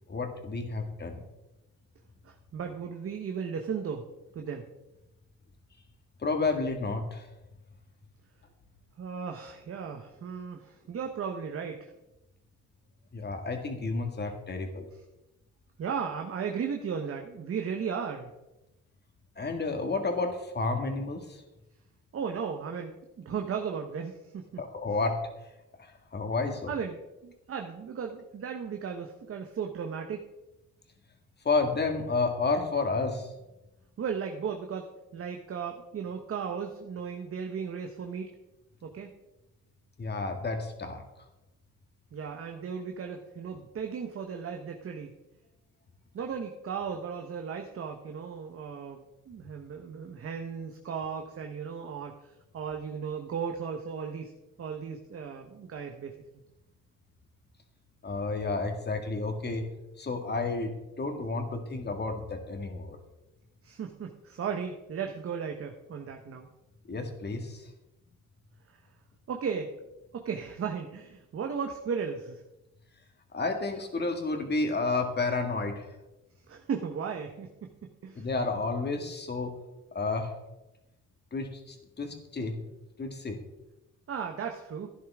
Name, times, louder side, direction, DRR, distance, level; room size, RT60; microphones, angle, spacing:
voice 1, 0.1-1.2 6.2-7.3 13.1-14.9 19.4-21.4 24.6-25.2 25.8-26.7 31.4-33.3 40.0-41.0 58.0-59.7 60.0-63.0 66.9-67.7 73.3-75.9 78.2-79.5 79.9-80.3 81.3-82.6 83.0-83.4, left 3 dB, 35° left, 5 dB, 2.0 m, -31 dB
voice 2, 2.2-4.1 4.3-4.7 9.0-11.9 15.8-18.3 22.1-24.6 26.7-30.2 34.0-38.3 38.8-39.1 42.1-45.1 46.1-54.3 54.6-56.1 63.6-66.5 68.7-68.8 69.3-69.7 70.1-72.4 76.5-78.3 84.1-84.9, right 6 dB, 50° right, 3 dB, 1.1 m, -36 dB
11.5 x 10.0 x 3.6 m, 0.97 s
cardioid pair, 90°, 30 cm